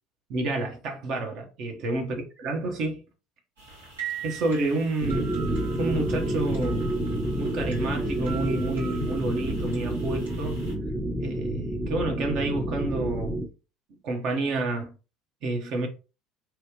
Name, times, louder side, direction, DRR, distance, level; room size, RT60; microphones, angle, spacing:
voice 1, 0.3-3.0 4.2-5.4 5.8-6.9 7.4-10.6 11.2-13.4 14.0-14.9 15.4-15.9, right 2 dB, 55° right, 1.1 m, -29 dB
sound 1, 3.6-10.7, right 7 dB, 85° right, 1.6 m, -42 dB
sound 2, 5.0-13.5, right 1 dB, 10° right, 0.7 m, -29 dB
3.1 x 2.4 x 3.1 m
hypercardioid pair, 70°, 0 cm